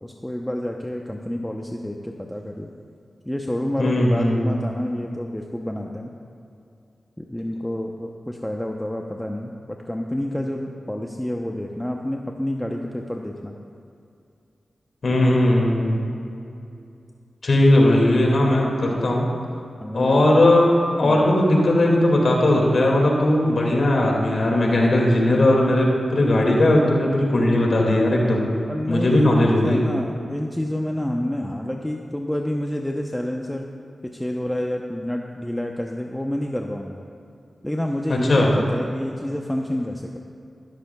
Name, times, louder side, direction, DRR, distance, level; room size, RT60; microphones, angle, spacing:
voice 1, 0.0-2.7 3.2-6.1 7.2-13.6 19.8-20.3 21.0-21.3 28.7-33.7 34.1-37.0 37.6-40.2, left 1 dB, 10° left, 1 dB, 0.7 m, -28 dB
voice 2, 3.8-4.6 15.0-15.9 17.4-19.3 19.9-20.7 21.0-28.4 28.9-29.8 38.1-38.5, left 1 dB, 70° left, -1 dB, 2.1 m, -18 dB
14.5 x 12.5 x 2.3 m, 2.5 s
cardioid pair, 45°, 0 cm